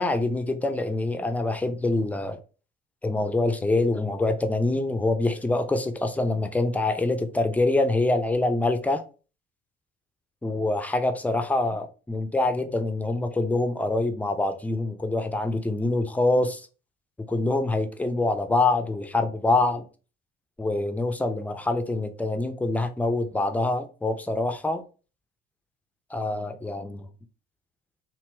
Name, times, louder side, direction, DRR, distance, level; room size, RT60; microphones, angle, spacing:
voice 1, 0.0-2.4 3.0-9.0 10.4-16.7 17.3-19.8 20.6-24.8 26.1-27.1, left 2 dB, 5° left, 0.3 m, -25 dB
2.8 x 2.2 x 3.0 m
hypercardioid pair, 60°, 30 cm